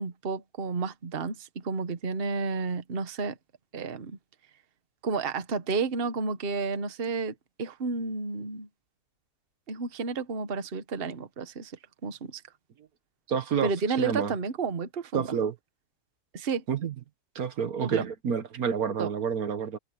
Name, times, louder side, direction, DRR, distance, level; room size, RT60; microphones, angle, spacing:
voice 1, 0.0-3.4 3.7-4.2 5.0-8.7 9.7-12.4 13.6-15.4 16.3-16.6 17.8-18.1 19.0-19.1, right 4 dB, 40° right, 1.3 m, -31 dB
voice 2, 13.3-13.7 14.0-14.3 15.1-15.5 16.7-16.9 17.3-19.8, right 7 dB, 70° right, 1.6 m, -29 dB
open air
omnidirectional pair, 1.7 m